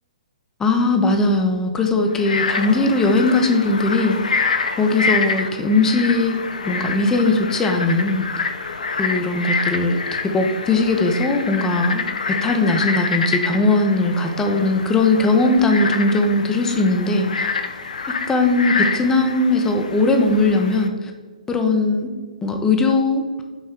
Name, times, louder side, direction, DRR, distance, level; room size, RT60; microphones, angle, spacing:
voice 1, 0.6-4.2 4.8-6.4 6.6-8.2 9.0-10.0 10.3-12.0 12.4-17.5 18.3-21.1 21.5-22.1 22.4-23.2, left 2 dB, 10° left, 4 dB, 0.5 m, -19 dB
Frog, 2.1-20.9, left 4 dB, 75° left, 0.4 m, -27 dB
6.0 x 2.1 x 3.6 m, 1.4 s
hypercardioid pair, 130°, 4 cm